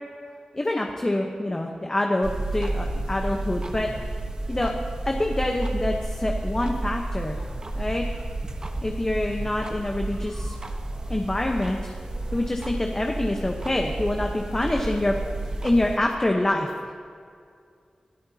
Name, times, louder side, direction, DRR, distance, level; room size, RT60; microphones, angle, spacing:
voice 1, 0.5-3.9 4.5-4.7 5.0-7.4 7.7-8.0 8.8-10.5 11.1-11.9 12.3-15.1 15.6-16.7, left 1 dB, 25° left, 1 dB, 1.0 m, -26 dB
sound 1, 2.2-16.0, right 2 dB, 35° right, 1.1 m, -31 dB
23.5 x 13.0 x 2.8 m, 2.3 s
wide cardioid pair, 100°, 2 cm